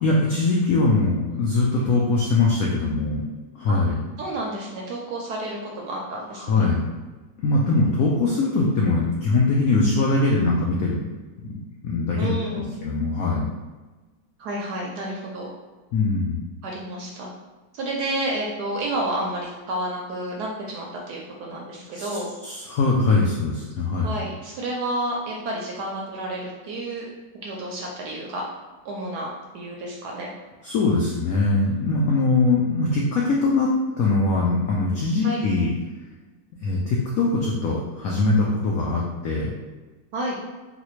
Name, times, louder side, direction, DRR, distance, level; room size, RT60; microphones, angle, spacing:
voice 1, 0.0-3.2 3.5-4.0 6.4-6.8 7.4-11.0 11.4-11.6 11.8-12.3 12.8-13.5 15.9-16.4 21.9-22.1 22.4-24.1 30.6-33.7 34.0-35.7 36.6-39.5, left 3 dB, 80° left, -3 dB, 0.7 m, -22 dB
voice 2, 4.2-6.7 12.2-12.7 14.4-15.5 16.6-17.3 17.7-22.3 24.0-27.1 27.4-28.4 28.8-30.3 35.2-35.4 40.1-40.4, right 1 dB, 70° right, -2 dB, 1.0 m, -30 dB
4.0 x 2.1 x 3.0 m, 1.2 s
omnidirectional pair, 2.1 m